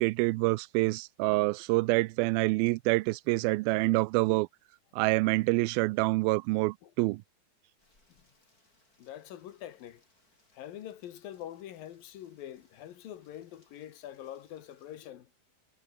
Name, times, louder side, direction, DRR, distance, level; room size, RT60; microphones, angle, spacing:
voice 1, 0.0-4.5 4.9-7.2, right 23 dB, 85° right, 2.2 m, -27 dB
Rain, 7.8-15.1, left 2 dB, 20° left, 7.4 m, -70 dB
voice 2, 9.0-10.0 10.5-15.3, left 11 dB, 65° left, 3.3 m, -45 dB
omnidirectional pair, 4.7 m